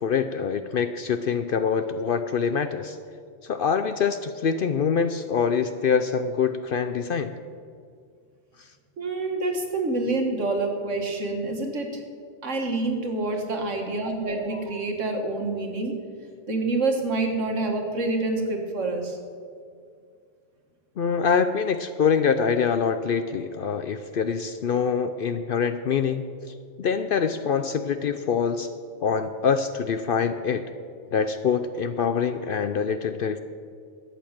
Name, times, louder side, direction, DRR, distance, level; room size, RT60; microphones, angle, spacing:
voice 1, 0.0-3.0 3.5-7.3 21.0-26.3 26.8-28.7 29.0-30.6 31.1-33.4, left 6 dB, 60° left, 10 dB, 0.6 m, -25 dB
voice 2, 9.0-11.9 12.4-15.9 16.5-19.2, right 2 dB, 75° right, 3 dB, 2.0 m, -27 dB
13.0 x 8.5 x 7.3 m, 2.1 s
omnidirectional pair, 1.3 m